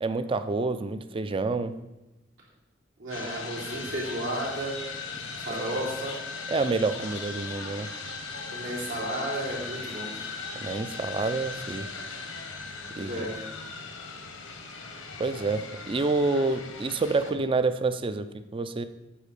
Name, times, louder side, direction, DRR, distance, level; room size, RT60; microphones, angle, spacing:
voice 1, 0.0-1.7 5.5-5.8 6.5-7.9 10.5-11.9 13.0-13.1 15.2-18.8, right 3 dB, 25° right, 11 dB, 0.4 m, -28 dB
voice 2, 3.0-4.8 5.4-6.2 8.5-10.1 12.9-13.3, right 1 dB, 80° right, -5 dB, 3.1 m, -33 dB
sound 1, 3.1-17.3, left 4 dB, 90° left, 1.1 m, -38 dB
8.6 x 4.1 x 6.6 m, 0.98 s
head